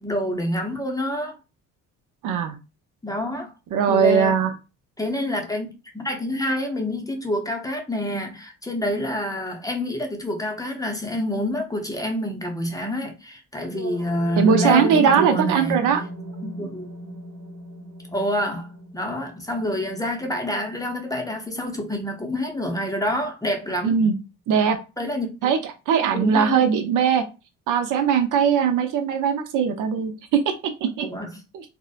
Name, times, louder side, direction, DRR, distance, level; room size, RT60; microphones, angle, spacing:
voice 1, 0.0-1.3 3.0-3.5 3.9-4.3 5.0-15.8 16.4-17.1 18.1-24.1 25.0-25.5 26.1-26.7 31.0-31.4, left 1 dB, 10° left, 0.6 m, -27 dB
voice 2, 2.2-2.6 3.7-4.5 14.4-16.0 23.8-24.1 24.5-24.8 25.4-25.6 25.9-27.2 27.7-31.1 31.5-31.6, right 7 dB, 65° right, 0.5 m, -20 dB
sound 1, 13.7-21.7, right 2 dB, 50° right, 1.1 m, -34 dB
2.7 x 2.1 x 2.4 m
supercardioid pair, 75°, 34 cm